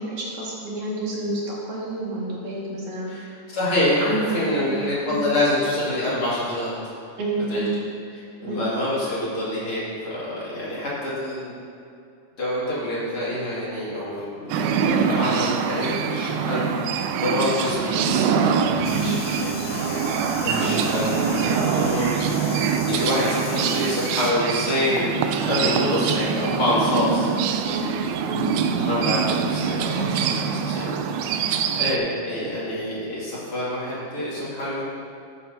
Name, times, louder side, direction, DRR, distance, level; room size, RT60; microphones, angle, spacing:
voice 1, 0.0-3.1 4.0-5.2 7.2-7.7 8.5-8.6 18.9-19.2 20.6-20.8 27.6-28.5, right 2 dB, 65° right, -5 dB, 3.3 m, -29 dB
voice 2, 3.1-6.9 7.5-7.6 8.4-11.6 12.4-20.1 20.4-27.3 28.8-34.8, left 1 dB, 45° left, -8 dB, 3.0 m, -27 dB
sound 1, 14.5-32.0, right 6 dB, 80° right, 2.0 m, -24 dB
sound 2, 18.8-24.3, left 8 dB, 80° left, 1.5 m, -38 dB
13.5 x 8.8 x 2.8 m, 2.5 s
omnidirectional pair, 3.7 m